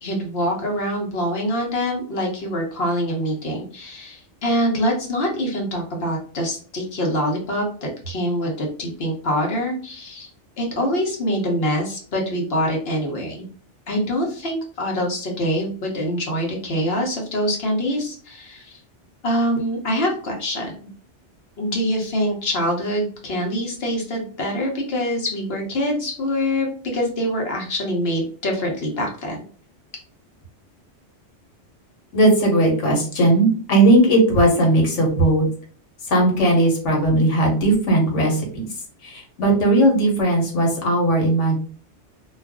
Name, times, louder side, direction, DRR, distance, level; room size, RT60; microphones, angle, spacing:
voice 1, 0.0-10.3 10.6-13.4 13.9-18.8 19.2-20.8 21.6-26.7 26.9-29.4, equal, 60° left, 0 dB, 1.0 m, -24 dB
voice 2, 32.1-35.5 36.1-38.7 39.0-41.6, right 1 dB, 85° left, 0 dB, 1.3 m, -17 dB
2.5 x 2.4 x 3.5 m, 0.43 s
omnidirectional pair, 1.2 m